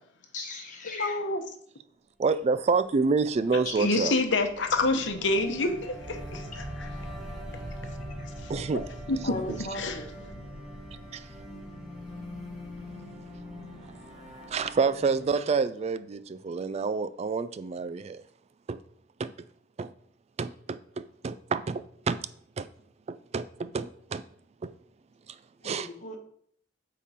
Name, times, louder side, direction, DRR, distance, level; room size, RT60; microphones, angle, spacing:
voice 1, 0.3-1.2 3.6-4.0 8.2-8.3 9.2-10.0 25.6-26.2, left 2 dB, 45° left, 1.1 m, -37 dB
voice 2, 0.8-1.4 3.8-6.9 8.4-8.5 9.1-9.4 9.7-10.0, left 2 dB, 80° left, 0.9 m, -27 dB
voice 3, 2.2-4.1 8.5-8.8 9.5-9.6 11.1-11.3 13.8-13.9 14.4-18.2 18.7-18.8 19.2-19.3 19.8-19.9 20.4-22.2 22.6-22.7 23.1-24.2 24.6-24.7 25.6-25.9, right 4 dB, 35° right, 0.3 m, -28 dB
sound 1, 2.7-15.6, equal, 5° right, 1.5 m, -46 dB
sound 2, 4.7-14.9, equal, 60° right, 1.1 m, -43 dB
8.4 x 3.7 x 4.2 m
head